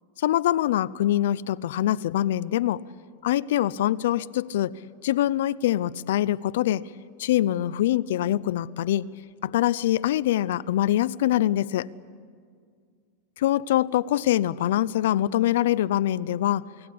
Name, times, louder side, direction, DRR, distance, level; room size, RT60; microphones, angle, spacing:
voice 1, 0.2-2.8 3.2-4.7 5.0-6.9 7.2-9.1 9.4-11.9 13.4-16.6, left 13 dB, 70° left, 18 dB, 0.5 m, -24 dB
28.5 x 19.5 x 8.6 m, 2.1 s
supercardioid pair, 150°, 0 cm